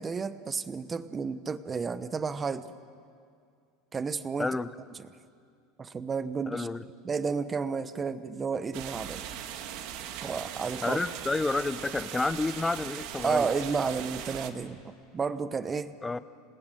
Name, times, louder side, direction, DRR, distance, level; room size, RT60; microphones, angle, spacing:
voice 1, 0.0-2.7 3.9-4.6 5.8-6.7 7.0-9.2 10.2-11.0 13.2-15.9, right 5 dB, 20° right, 13 dB, 1.0 m, -31 dB
voice 2, 6.5-6.8 10.8-13.5 16.0-16.2, left 3 dB, 10° left, 14 dB, 0.7 m, -30 dB
sound 1, 8.7-14.5, right 10 dB, 65° right, 1.9 m, -39 dB
28.5 x 19.0 x 9.2 m, 2.3 s
supercardioid pair, 135°, 0 cm